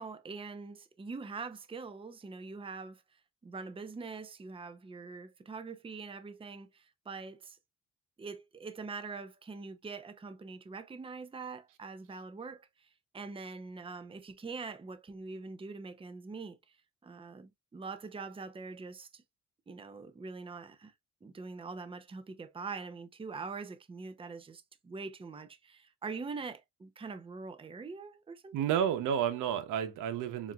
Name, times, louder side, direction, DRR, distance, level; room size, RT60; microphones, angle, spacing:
voice 1, 0.0-3.0 3.4-7.6 8.2-12.9 13.1-16.6 17.0-19.2 19.7-20.9 21.2-28.7, right 4 dB, 20° right, 0.6 m, -43 dB
voice 2, 28.5-30.5, right 9 dB, 85° right, 0.9 m, -31 dB
7.1 x 2.6 x 2.3 m
cardioid pair, 90°, 30 cm